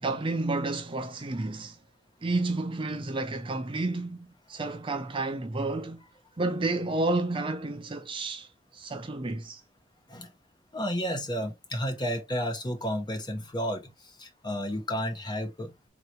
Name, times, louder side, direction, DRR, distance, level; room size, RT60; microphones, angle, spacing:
voice 1, 0.0-1.8 2.2-6.0 6.4-9.6, right 2 dB, 30° right, 0.5 m, -31 dB
voice 2, 10.7-13.9 14.2-15.9, equal, 25° left, 1.0 m, -32 dB
3.9 x 2.9 x 3.2 m
head